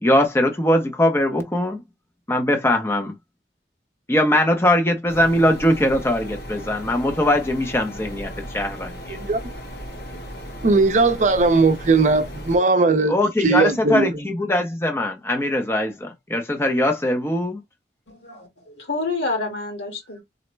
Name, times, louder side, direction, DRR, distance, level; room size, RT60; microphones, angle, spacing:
voice 1, 0.0-1.8 2.3-3.1 4.1-9.2 13.1-17.6, left 1 dB, 15° left, 0.6 m, -21 dB
sound 1, 5.1-12.6, equal, 65° left, 1.2 m, -36 dB
voice 2, 10.6-13.1 13.4-14.1, right 3 dB, 45° right, 0.5 m, -18 dB
voice 3, 18.1-20.2, left 3 dB, 85° left, 1.7 m, -28 dB
3.9 x 2.1 x 3.2 m
head